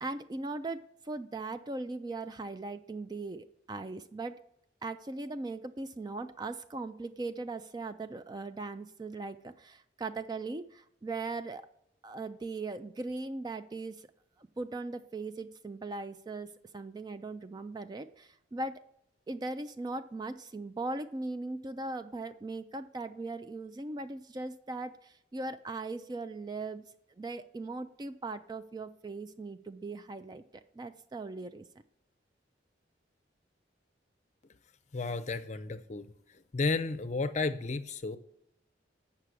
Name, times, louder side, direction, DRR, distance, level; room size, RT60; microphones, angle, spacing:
voice 1, 0.0-4.4 4.8-11.7 12.0-14.1 14.4-18.8 19.3-26.9 27.2-31.6, right 3 dB, 20° right, 10 dB, 0.3 m, -39 dB
voice 2, 34.9-36.1 36.5-38.2, left 3 dB, 40° left, 10 dB, 0.5 m, -32 dB
8.2 x 5.7 x 6.1 m, 0.75 s
head